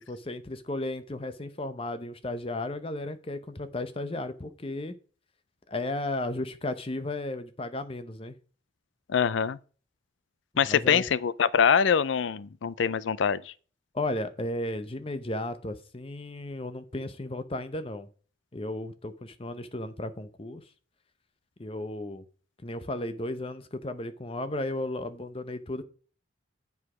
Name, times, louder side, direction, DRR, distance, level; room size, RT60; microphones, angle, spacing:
voice 1, 0.1-5.0 5.7-8.4 10.7-11.1 13.9-18.1 18.5-20.6 21.6-22.2 22.6-25.8, left 1 dB, 30° left, 0.7 m, -34 dB
voice 2, 9.1-9.6 10.6-13.5, left 7 dB, 70° left, 0.4 m, -24 dB
8.2 x 4.9 x 4.8 m
head